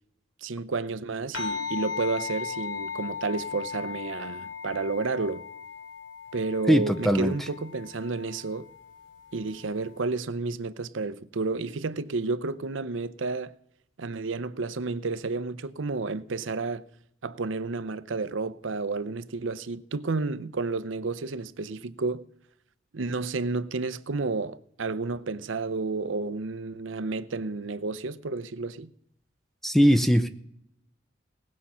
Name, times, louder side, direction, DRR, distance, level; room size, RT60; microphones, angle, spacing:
voice 1, 0.4-5.4 6.3-8.7 9.3-13.5 14.0-16.8 17.2-22.3 22.9-28.9, right 3 dB, 80° right, 0.7 m, -31 dB
sound 1, 1.3-10.0, left 6 dB, 80° left, 3.1 m, -38 dB
voice 2, 6.7-7.3 29.6-30.3, equal, ahead, 0.5 m, -20 dB
18.5 x 7.3 x 5.7 m
head